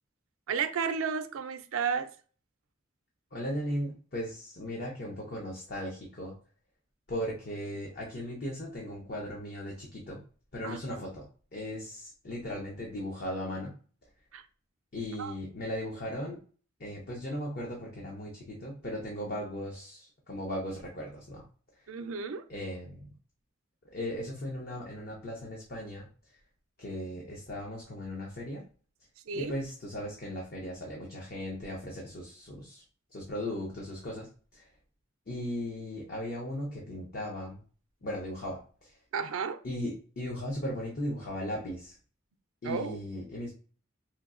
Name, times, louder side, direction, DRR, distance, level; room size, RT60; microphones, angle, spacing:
voice 1, 0.5-2.1 10.6-11.1 14.3-14.4 15.2-15.3 21.9-22.4 29.3-29.5 39.1-39.6 42.6-43.0, right 6 dB, 85° right, 0.4 m, -33 dB
voice 2, 3.3-6.4 7.1-10.2 10.5-11.3 11.5-13.7 14.9-16.4 16.8-21.4 22.5-23.1 23.9-26.1 26.8-28.7 29.3-32.8 33.1-34.7 35.3-37.6 38.0-39.0 39.6-42.0 42.6-43.5, left 1 dB, 50° left, 0.7 m, -37 dB
4.4 x 2.7 x 2.5 m
head